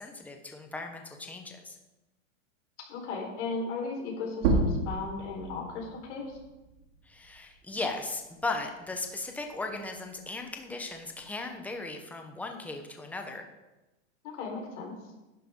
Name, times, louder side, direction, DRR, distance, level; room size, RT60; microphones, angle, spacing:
voice 1, 0.0-1.8 7.0-13.4, left 3 dB, 5° left, 4 dB, 1.1 m, -37 dB
voice 2, 2.9-6.4 14.2-14.9, left 4 dB, 65° left, -1 dB, 4.8 m, -36 dB
sound 1, 4.3-9.5 9.9-11.7, right 3 dB, 60° right, 3.0 m, -33 dB
11.5 x 10.5 x 3.9 m, 1.0 s
supercardioid pair, 135°, 38 cm